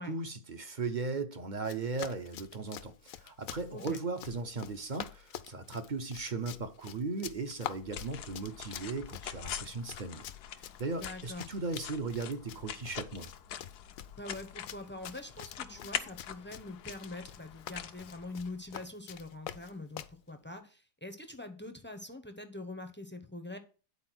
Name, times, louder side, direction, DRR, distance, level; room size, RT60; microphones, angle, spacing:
voice 1, 0.0-10.2 10.5-13.3, right 3 dB, 45° right, 0.6 m, -37 dB
Run, 1.6-20.2, left 11 dB, 70° left, 0.9 m, -47 dB
sound 1, 7.5-18.8, left 9 dB, 90° left, 1.3 m, -44 dB
voice 2, 11.0-11.4 14.2-23.6, left 2 dB, 15° left, 0.4 m, -44 dB
9.7 x 4.2 x 6.0 m
omnidirectional pair, 1.7 m